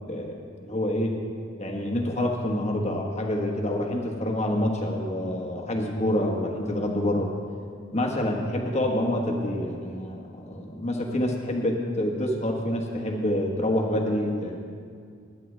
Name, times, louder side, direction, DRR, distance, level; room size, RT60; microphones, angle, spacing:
voice 1, 0.1-1.1 1.6-7.3 7.9-14.6, left 1 dB, 35° left, 1 dB, 1.3 m, -27 dB
16.0 x 10.5 x 3.3 m, 2.3 s
head